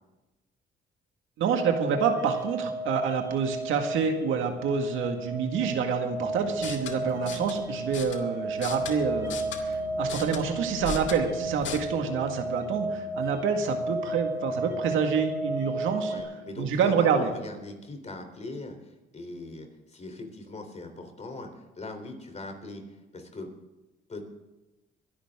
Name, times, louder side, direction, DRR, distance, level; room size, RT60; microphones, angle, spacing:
voice 1, 1.4-16.1 16.6-17.3, right 6 dB, 85° right, 5 dB, 2.0 m, -27 dB
sound 1, 1.5-16.2, right 2 dB, 15° right, 2.5 m, -33 dB
sound 2, 6.1-17.8, equal, 55° left, 6.0 m, -49 dB
sound 3, 6.5-11.8, left 7 dB, 75° left, 1.8 m, -39 dB
voice 2, 16.1-22.8 23.1-23.5 24.1-24.2, left 2 dB, 35° left, 5 dB, 3.7 m, -40 dB
23.0 x 11.5 x 3.7 m, 1.1 s
cardioid pair, 90°, 20 cm